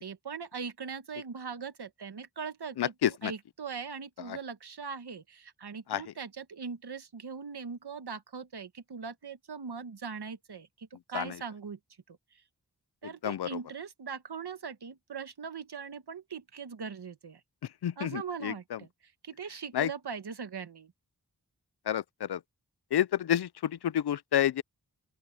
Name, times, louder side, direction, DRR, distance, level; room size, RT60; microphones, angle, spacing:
voice 1, 0.0-11.8 12.1-12.4 13.0-17.4 18.0-18.9 19.2-20.9, right 6 dB, 80° right, 1.3 m, -41 dB
voice 2, 2.8-3.3 5.9-6.0 11.1-11.2 13.2-13.5 17.8-18.5 19.7-19.9 21.9-22.0 22.3-22.4 22.9-24.6, left 10 dB, 85° left, 0.5 m, -28 dB
open air
cardioid pair, 40°, 39 cm